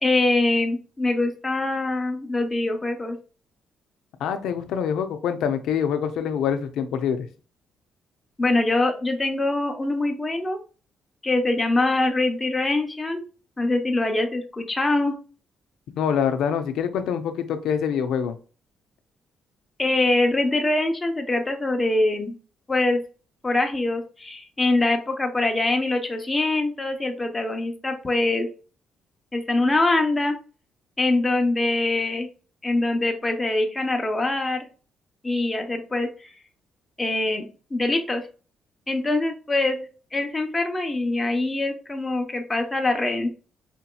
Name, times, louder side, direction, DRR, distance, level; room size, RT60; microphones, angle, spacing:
voice 1, 0.0-3.2 8.4-10.6 11.2-13.2 13.6-15.2 19.8-22.3 22.7-23.0 23.4-28.5 29.3-30.3 31.0-32.3 32.6-34.7 35.2-36.3 37.0-38.3 38.9-39.8 40.1-43.3, left 2 dB, 20° left, 4 dB, 0.9 m, -23 dB
voice 2, 4.2-7.3 16.0-18.4, left 7 dB, 80° left, 8 dB, 0.5 m, -25 dB
5.0 x 2.8 x 2.3 m, 0.37 s
cardioid pair, 90°, 0 cm